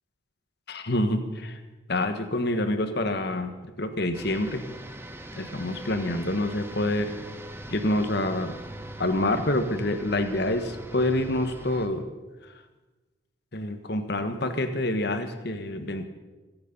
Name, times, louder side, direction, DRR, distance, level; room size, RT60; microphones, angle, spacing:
voice 1, 0.7-1.6 1.9-4.6 5.4-7.1 7.7-8.6 9.0-12.0 13.5-16.0, left 1 dB, 55° left, 8 dB, 1.5 m, -27 dB
sound 1, 4.1-11.9, right 1 dB, 10° right, 1.0 m, -41 dB
25.5 x 9.7 x 5.5 m, 1.2 s
head